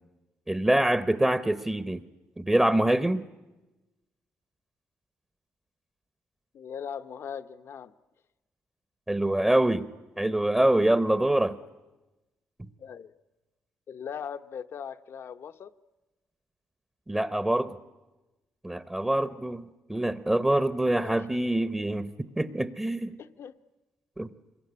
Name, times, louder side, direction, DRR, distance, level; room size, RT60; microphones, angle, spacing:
voice 1, 0.5-2.0 2.4-3.2 9.1-9.9 10.2-11.6 17.1-17.8 18.6-19.6 19.9-23.2 24.2-24.3, right 1 dB, 10° right, 0.9 m, -25 dB
voice 2, 6.5-7.9 12.8-13.1 13.9-15.7 21.0-21.3 23.2-23.6, left 7 dB, 60° left, 0.9 m, -39 dB
26.0 x 22.0 x 9.7 m
cardioid pair, 90°, 5 cm